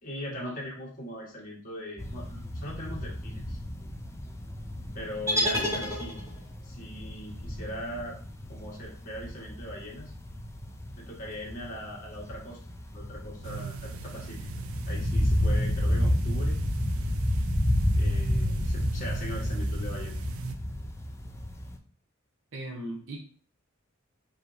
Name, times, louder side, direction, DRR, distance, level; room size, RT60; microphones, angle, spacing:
voice 1, 0.0-3.6 4.9-6.2 6.6-8.2 8.5-10.1 10.9-12.6 12.9-14.4 14.8-16.6 17.9-20.2, equal, 40° left, -3 dB, 1.4 m, -40 dB
sound 1, 2.0-21.8, left 1 dB, 15° left, 0.4 m, -31 dB
sound 2, 5.3-6.6, left 1 dB, 15° right, 0.8 m, -29 dB
sound 3, 13.4-20.5, right 6 dB, 85° right, 0.4 m, -40 dB
voice 2, 22.5-23.2, right 1 dB, 65° right, 1 dB, 0.8 m, -38 dB
4.8 x 2.9 x 2.6 m, 0.44 s
head